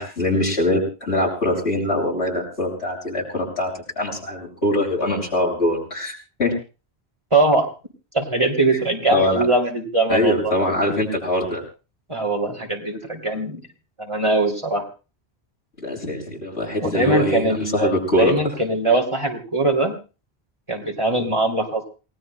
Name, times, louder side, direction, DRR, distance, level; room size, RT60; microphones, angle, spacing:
voice 1, 0.0-6.1 6.4-6.5 9.1-9.5 10.1-11.6 15.8-18.3, left 1 dB, 90° left, -1 dB, 7.7 m, -22 dB
voice 2, 7.3-7.7 8.1-10.5 12.1-13.6 14.0-14.8 16.8-19.9 20.7-21.8, right 2 dB, 25° right, 0 dB, 2.9 m, -21 dB
28.0 x 19.0 x 2.2 m, 0.34 s
omnidirectional pair, 1.1 m